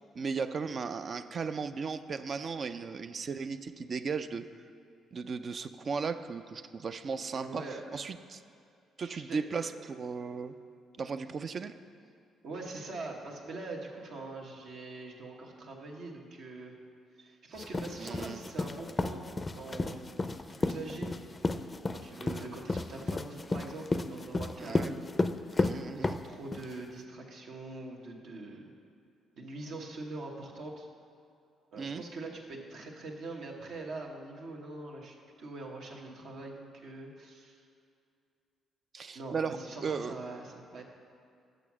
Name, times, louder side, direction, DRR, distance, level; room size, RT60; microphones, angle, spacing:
voice 1, 0.1-4.4 5.1-7.7 7.9-8.4 9.0-10.5 11.0-11.7 18.0-18.4 24.6-24.9 25.6-26.2 31.8-32.0 38.9-40.1, right 5 dB, 50° right, 11 dB, 0.4 m, -36 dB
voice 2, 7.3-7.8 9.0-9.7 12.4-16.8 17.2-19.2 19.5-21.1 21.9-25.0 26.0-28.7 29.4-30.9 31.7-37.6 39.1-40.9, right 2 dB, 70° right, 0 dB, 1.1 m, -43 dB
sound 1, 17.6-26.7, left 3 dB, 30° left, 0.4 m, -32 dB
6.7 x 6.3 x 6.0 m, 2.4 s
supercardioid pair, 60°, 0 cm